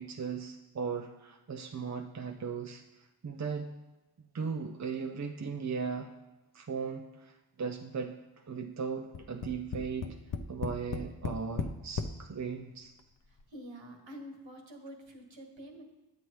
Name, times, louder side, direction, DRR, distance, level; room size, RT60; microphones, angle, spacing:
voice 1, 0.0-2.8 3.2-3.7 4.3-6.1 6.5-8.2 8.5-10.2 10.5-12.9, right 5 dB, 35° right, 4 dB, 0.6 m, -37 dB
Tap, 9.1-12.2 13.0-13.1 13.4-13.5, left 5 dB, 45° left, 0.6 m, -36 dB
voice 2, 13.5-15.8, equal, 70° right, 2 dB, 1.6 m, -47 dB
8.6 x 8.3 x 3.1 m, 1.0 s
cardioid pair, 55°, 47 cm